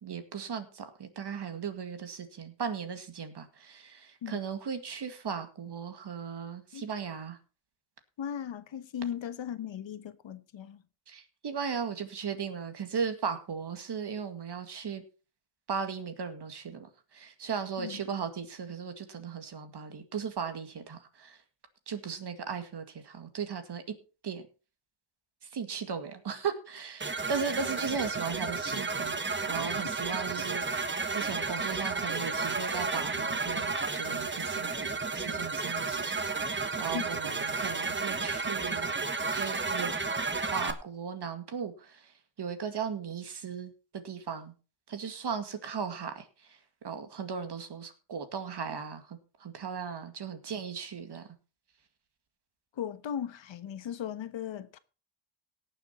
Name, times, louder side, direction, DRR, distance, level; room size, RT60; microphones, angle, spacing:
voice 1, 0.0-7.4 11.1-15.0 15.7-21.4 21.9-23.8 24.2-24.4 25.5-29.2 29.5-38.9 39.3-39.9 40.5-42.1 42.4-44.5 44.9-46.6 46.8-51.3, right 6 dB, 55° right, 2.1 m, -37 dB
voice 2, 8.2-10.8 17.8-18.0 36.9-37.0 52.7-54.8, left 9 dB, 65° left, 1.2 m, -37 dB
sound 1, 27.0-40.7, right 4 dB, 20° right, 1.3 m, -32 dB
18.0 x 7.2 x 4.3 m
wide cardioid pair, 125°, 49 cm